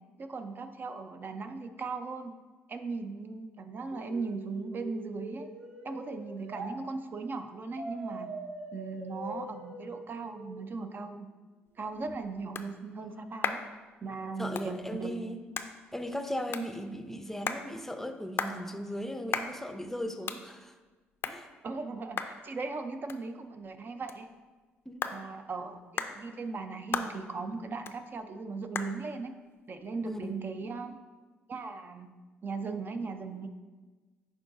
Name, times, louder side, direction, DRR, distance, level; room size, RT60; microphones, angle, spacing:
voice 1, 0.2-2.3 2.7-5.5 5.8-8.3 8.7-11.3 11.8-13.6 14.0-15.1 21.6-24.3 25.1-29.3 29.7-31.0 31.5-32.1 32.4-33.5, right 4 dB, 40° right, 7 dB, 0.6 m, -38 dB
sound 1, 3.9-6.7 7.8-10.8, right 2 dB, 85° right, 0.8 m, -43 dB
sound 2, 11.7-31.0, left 6 dB, 50° left, 0.5 m, -41 dB
voice 2, 14.4-15.4 15.9-20.8 21.3-21.5 24.9-25.0 30.0-30.4, equal, 5° left, 8 dB, 0.6 m, -37 dB
10.5 x 3.8 x 2.7 m, 1.3 s
supercardioid pair, 65°, 5 cm